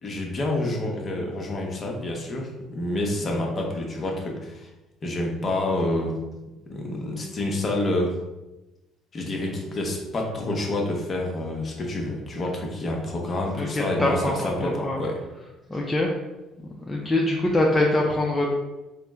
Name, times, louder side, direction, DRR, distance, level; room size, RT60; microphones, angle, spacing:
voice 1, 0.0-4.7 5.0-6.1 6.7-8.1 9.1-15.1, left 1 dB, 35° left, 0 dB, 0.8 m, -28 dB
voice 2, 13.5-15.0 15.7-16.1 16.9-18.5, left 1 dB, 15° left, -3 dB, 0.5 m, -24 dB
4.2 x 2.1 x 3.5 m, 1.0 s
cardioid pair, 120°, 0 cm